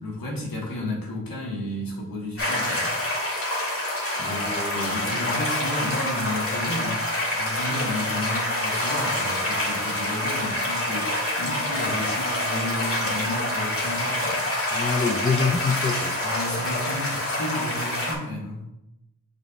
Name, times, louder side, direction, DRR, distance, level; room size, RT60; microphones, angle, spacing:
voice 1, 0.0-2.9 4.2-14.4 16.2-18.7, left 1 dB, 85° left, 1.7 m, -32 dB
sound 1, 2.4-18.1, left 1 dB, 40° left, 2.0 m, -27 dB
voice 2, 4.2-5.0 14.7-16.2, left 4 dB, 20° left, 0.4 m, -26 dB
6.7 x 6.1 x 2.5 m
cardioid pair, 75°, 34 cm